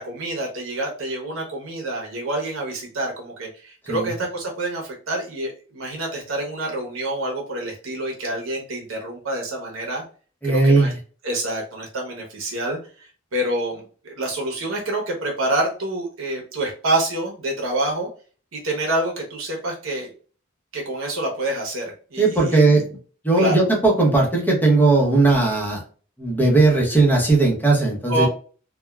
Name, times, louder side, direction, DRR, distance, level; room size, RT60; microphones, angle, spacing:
voice 1, 0.0-10.0 10.4-10.9 11.2-12.8 13.3-18.1 18.5-20.1 20.7-22.6 23.4-23.6 28.1-28.3, right 1 dB, 80° right, 0 dB, 0.8 m, -27 dB
voice 2, 10.4-10.9 22.2-22.9 23.2-25.8 26.2-28.3, right 3 dB, 10° left, -1 dB, 0.8 m, -17 dB
3.4 x 2.2 x 2.2 m, 0.40 s
head